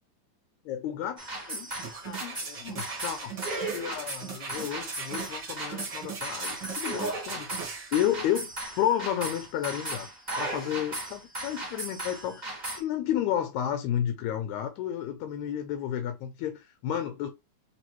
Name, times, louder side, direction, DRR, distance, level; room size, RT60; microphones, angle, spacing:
voice 1, 0.7-1.7 2.0-3.4 3.7-8.5 8.8-10.1 10.4-17.3, left 10 dB, 80° left, 1.9 m, -32 dB
sound 1, 1.2-12.8, right 2 dB, 25° right, 0.9 m, -36 dB
sound 2, 1.7-8.0 8.5-8.6, right 6 dB, 55° right, 1.3 m, -40 dB
4.0 x 3.4 x 3.0 m
omnidirectional pair, 3.4 m